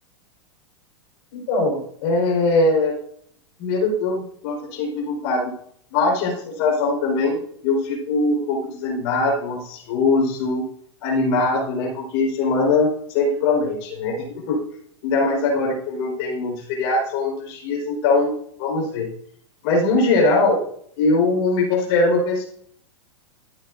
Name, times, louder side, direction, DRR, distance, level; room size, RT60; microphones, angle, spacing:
voice 1, 1.3-2.9 3.6-5.5 5.9-10.6 11.0-14.6 15.0-19.1 19.6-20.6 21.0-22.4, left 3 dB, 55° left, 0 dB, 4.4 m, -21 dB
13.5 x 9.0 x 2.6 m, 0.66 s
hypercardioid pair, 110°, 15 cm